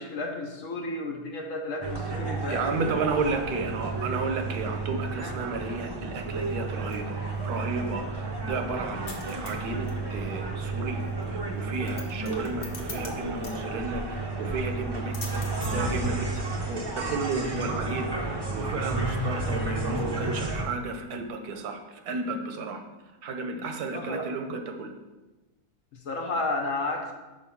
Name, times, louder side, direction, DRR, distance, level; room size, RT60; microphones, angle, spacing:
voice 1, 0.0-2.7 3.3-3.5 23.9-24.3 25.9-27.1, left 2 dB, 65° left, 2 dB, 1.2 m, -32 dB
sound 1, 1.8-20.6, right 3 dB, 30° right, 0.4 m, -32 dB
voice 2, 2.5-11.0 11.3-15.4 15.7-22.8 23.2-24.9, right 3 dB, 85° right, 5 dB, 1.3 m, -33 dB
sound 2, 6.6-21.4, left 4 dB, 45° left, 0.9 m, -49 dB
5.4 x 4.4 x 5.9 m, 1.1 s
omnidirectional pair, 1.6 m